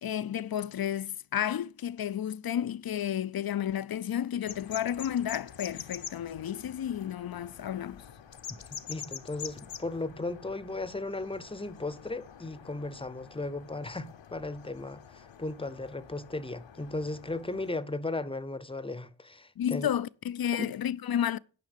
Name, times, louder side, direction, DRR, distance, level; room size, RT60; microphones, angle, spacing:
voice 1, 0.0-8.0 19.6-21.4, left 10 dB, 55° left, 0.5 m, -32 dB
sound 1, 4.4-17.7, left 8 dB, 75° left, 0.9 m, -46 dB
voice 2, 8.9-19.9 20.5-20.7, left 2 dB, 10° left, 0.7 m, -36 dB
9.8 x 5.6 x 6.6 m
wide cardioid pair, 95°, 45 cm